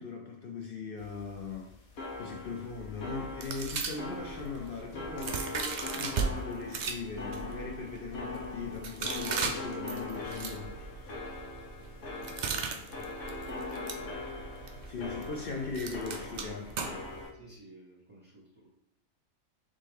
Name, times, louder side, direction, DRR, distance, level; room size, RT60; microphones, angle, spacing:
voice 1, 0.0-1.8 2.2-5.4 5.9-11.1 13.0-13.1 14.8-16.7, left 4 dB, 60° left, 1 dB, 0.6 m, -39 dB
sound 1, 1.0-17.3, left 2 dB, 90° left, 1.3 m, -41 dB
sound 2, 3.4-6.3 6.7-17.2, right 5 dB, 85° right, 0.4 m, -38 dB
voice 2, 12.2-14.1 17.3-18.7, right 1 dB, 25° right, -6 dB, 1.0 m, -56 dB
4.2 x 3.5 x 3.4 m, 0.79 s
omnidirectional pair, 1.4 m